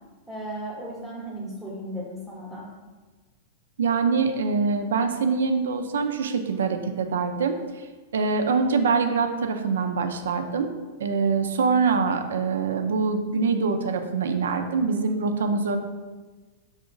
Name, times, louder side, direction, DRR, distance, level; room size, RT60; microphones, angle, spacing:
voice 1, 0.3-2.7, right 1 dB, 5° right, -6 dB, 0.7 m, -35 dB
voice 2, 3.8-7.9 8.1-10.7 11.0-15.8, right 5 dB, 85° right, 7 dB, 0.3 m, -24 dB
3.9 x 2.8 x 2.5 m, 1.3 s
hypercardioid pair, 120°, 0 cm